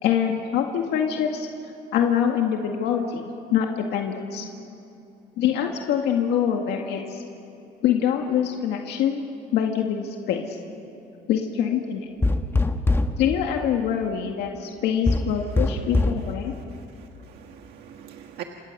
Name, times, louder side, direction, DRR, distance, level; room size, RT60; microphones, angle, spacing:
voice 1, 0.0-1.5 1.9-4.5 5.4-7.2 7.8-9.2 9.5-10.6 11.3-12.1 13.2-16.5, left 8 dB, 85° left, 2 dB, 2.0 m, -24 dB
sound 1, 12.2-13.2 15.1-16.3, left 2 dB, 15° left, 1.3 m, -22 dB
voice 2, 16.4-18.4, right 11 dB, 75° right, 3 dB, 1.6 m, -43 dB
28.5 x 26.0 x 6.7 m, 2.8 s
cardioid pair, 110°, 17 cm